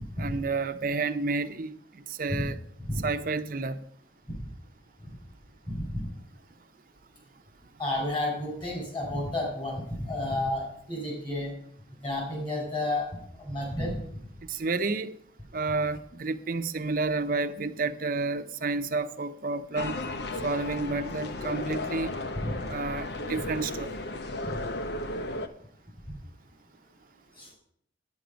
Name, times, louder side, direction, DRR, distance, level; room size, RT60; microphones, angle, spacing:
voice 1, 0.2-1.8 2.1-2.6 3.0-3.8 14.5-15.1 15.5-20.0 20.4-22.1 22.7-23.9, right 3 dB, 50° right, 0.6 m, -30 dB
voice 2, 5.7-6.1 7.8-11.5 12.0-13.1 13.4-14.0 22.4-22.5 27.4-27.5, left 1 dB, 25° left, 4.6 m, -31 dB
sound 1, 19.8-25.5, left 2 dB, 60° left, 0.8 m, -34 dB
9.5 x 9.3 x 5.1 m
head